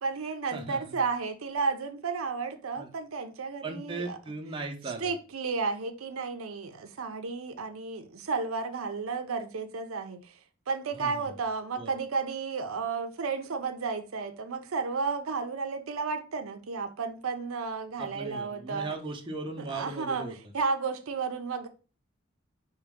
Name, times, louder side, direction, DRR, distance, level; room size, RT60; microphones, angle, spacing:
voice 1, 0.0-4.2 5.0-10.3 10.7-18.9 19.7-20.3 20.5-21.7, right 4 dB, 80° right, 0.6 m, -32 dB
voice 2, 0.5-1.0 2.8-2.9 3.6-5.1 10.9-11.3 11.8-11.9 18.0-20.3, right 3 dB, 25° right, 0.7 m, -38 dB
4.6 x 3.0 x 3.6 m
head